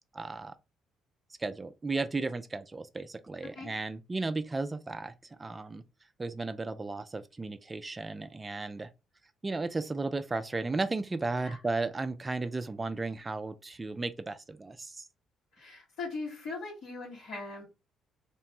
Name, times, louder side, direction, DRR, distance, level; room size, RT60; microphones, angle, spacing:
voice 1, 0.1-0.5 1.4-5.1 5.4-5.8 6.2-8.9 9.4-15.1, right 3 dB, 25° right, 0.3 m, -34 dB
voice 2, 15.5-17.6, left 3 dB, 75° left, 1.6 m, -40 dB
2.9 x 2.2 x 2.9 m
supercardioid pair, 60°, 0 cm